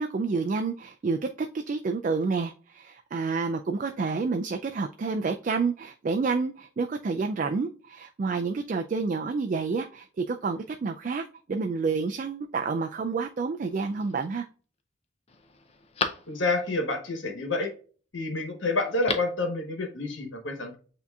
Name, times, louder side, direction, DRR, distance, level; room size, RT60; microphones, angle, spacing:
voice 1, 0.0-14.5, right 4 dB, 40° right, 0.3 m, -29 dB
Telephone, 13.7-14.3 14.8-14.9 15.3-16.8 18.8-19.5 19.7-19.8, left 4 dB, 30° left, 0.5 m, -35 dB
voice 2, 16.3-17.7 18.1-20.8, left 2 dB, 80° left, 1.2 m, -28 dB
8.0 x 2.8 x 2.3 m
head